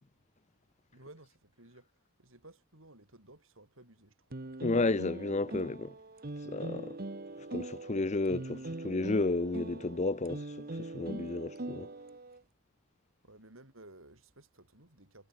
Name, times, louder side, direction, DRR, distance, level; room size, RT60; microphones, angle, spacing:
voice 1, 0.9-4.5 13.2-15.3, right 2 dB, 75° right, 6.5 m, -56 dB
sound 1, 4.3-12.4, right 2 dB, 45° right, 1.2 m, -42 dB
voice 2, 4.6-5.9 6.4-7.0 7.5-11.9, left 3 dB, 35° left, 0.7 m, -32 dB
head